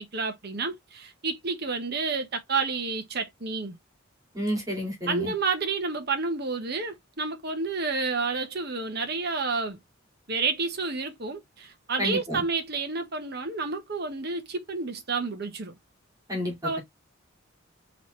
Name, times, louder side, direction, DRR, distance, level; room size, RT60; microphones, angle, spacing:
voice 1, 0.0-3.8 5.1-9.8 10.3-15.7 16.6-16.8, right 4 dB, 50° right, 1.2 m, -30 dB
voice 2, 4.3-5.3 12.0-12.4 16.3-16.8, left 1 dB, 15° right, 2.4 m, -30 dB
4.1 x 4.0 x 3.1 m
head